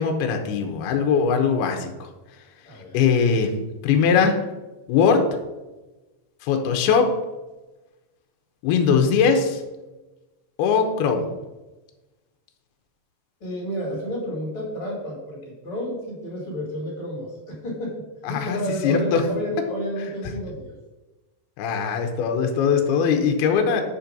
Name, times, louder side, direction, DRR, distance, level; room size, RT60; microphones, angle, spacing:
voice 1, 0.0-2.1 2.9-3.6 3.8-4.4 4.9-5.3 6.4-7.1 8.6-9.6 10.6-11.3 18.3-19.2 21.6-23.8, left 6 dB, 75° left, 4 dB, 2.6 m, -20 dB
voice 2, 2.6-3.0 13.4-20.7, equal, 40° left, -3 dB, 2.0 m, -31 dB
9.5 x 4.4 x 6.7 m, 1.1 s
omnidirectional pair, 5.3 m